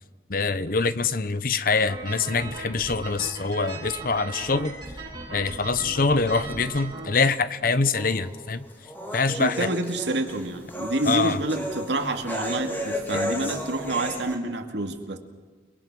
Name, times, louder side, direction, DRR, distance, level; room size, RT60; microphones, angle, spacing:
voice 1, 0.3-4.7 5.3-8.7 9.1-9.7 11.1-11.4, left 4 dB, 50° left, 14 dB, 0.9 m, -24 dB
sound 1, 1.9-7.0, right 3 dB, 25° right, 7.9 m, -38 dB
sound 2, 7.9-14.4, left 1 dB, 10° left, 2.9 m, -34 dB
voice 2, 9.3-15.2, right 2 dB, 80° right, 5 dB, 2.3 m, -28 dB
29.5 x 21.5 x 6.2 m, 1.4 s
head